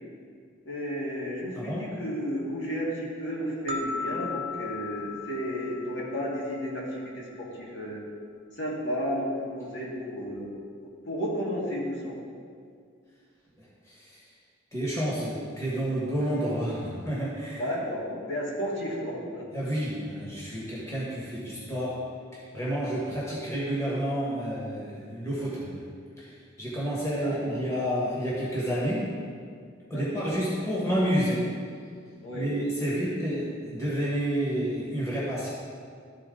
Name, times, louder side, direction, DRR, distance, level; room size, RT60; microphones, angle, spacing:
voice 1, 0.7-8.0 8.6-10.6 11.1-12.1 17.5-19.5 27.2-27.6 29.9-30.3 32.2-32.5 32.8-33.0, equal, 60° left, -5 dB, 1.9 m, -33 dB
sound 1, 3.7-6.8, left 4 dB, 30° right, 0.6 m, -37 dB
voice 2, 14.7-17.6 19.5-22.0 22.5-25.8 26.2-26.3 26.6-29.1 29.9-31.5 32.3-35.5, equal, 15° left, -7 dB, 1.6 m, -29 dB
13.0 x 4.3 x 3.8 m, 2.2 s
head